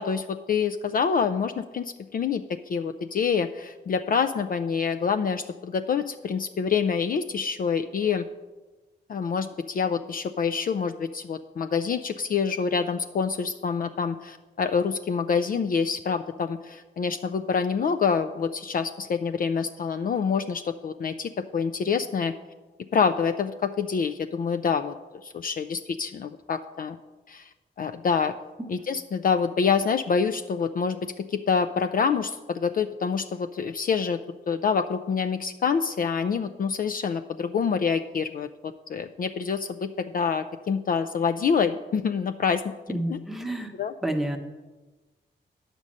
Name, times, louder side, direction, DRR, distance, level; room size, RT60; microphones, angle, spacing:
voice 1, 0.0-8.2 9.1-22.3 22.9-24.9 25.2-27.0 27.3-27.5 27.8-28.3 28.7-34.2 34.5-42.6 43.1-43.2 43.7-43.9, left 6 dB, 50° left, 8 dB, 0.4 m, -26 dB
voice 2, 42.9-43.7 44.0-44.4, right 1 dB, ahead, 4 dB, 1.0 m, -29 dB
9.8 x 5.2 x 7.4 m, 1.2 s
wide cardioid pair, 130°, 19 cm